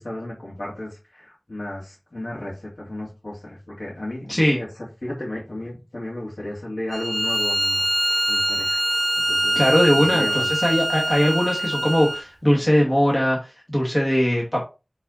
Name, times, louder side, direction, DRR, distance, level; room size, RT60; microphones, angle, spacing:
voice 1, 0.0-4.7 5.0-7.9 8.3-8.8 9.3-9.6 9.9-10.5, left 1 dB, 70° left, -5 dB, 2.8 m, -33 dB
Bowed string instrument, 6.9-12.3, right 1 dB, 25° right, 1.2 m, -23 dB
voice 2, 9.6-14.6, equal, 25° left, -2 dB, 2.2 m, -20 dB
8.2 x 4.2 x 4.1 m, 0.28 s
wide cardioid pair, 50°, 0 cm